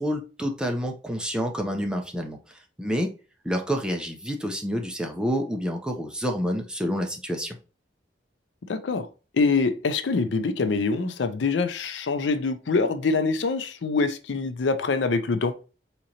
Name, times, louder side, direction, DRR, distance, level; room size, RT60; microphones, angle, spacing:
voice 1, 0.0-2.4 2.8-3.1 3.4-7.6, equal, 5° right, 0.5 m, -28 dB
voice 2, 8.7-9.1 9.3-15.5, left 4 dB, 70° left, 0.5 m, -25 dB
3.8 x 2.9 x 2.8 m
head